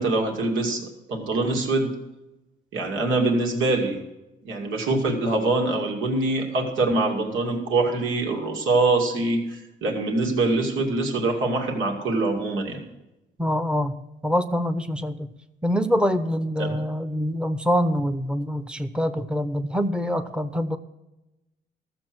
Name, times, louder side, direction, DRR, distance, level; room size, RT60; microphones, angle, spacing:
voice 1, 0.0-1.9 2.7-4.0 4.4-12.8 16.6-16.8, right 2 dB, 80° right, 2 dB, 2.5 m, -24 dB
voice 2, 13.4-13.9 14.2-15.3 15.6-20.8, equal, 5° right, 8 dB, 0.9 m, -25 dB
14.0 x 7.2 x 6.1 m, 0.97 s
cardioid pair, 90°, 20 cm